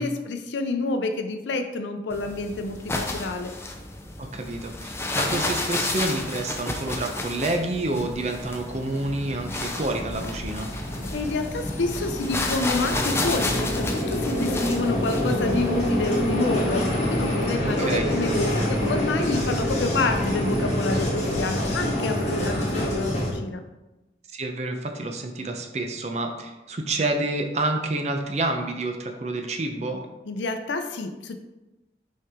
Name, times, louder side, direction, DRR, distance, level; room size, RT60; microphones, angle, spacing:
voice 1, 0.0-3.5 11.1-23.6 30.3-31.4, left 3 dB, 85° left, 7 dB, 0.5 m, -28 dB
sound 1, 2.1-16.7, left 2 dB, 15° left, 0.5 m, -32 dB
voice 2, 4.2-10.7 17.6-18.1 24.3-30.0, right 2 dB, 40° right, 4 dB, 0.7 m, -28 dB
Vehicle, 7.7-23.3, left 1 dB, 40° left, 1.6 m, -27 dB
sound 2, 10.1-21.4, equal, 10° right, 1.8 m, -42 dB
5.7 x 4.6 x 3.6 m, 1.0 s
head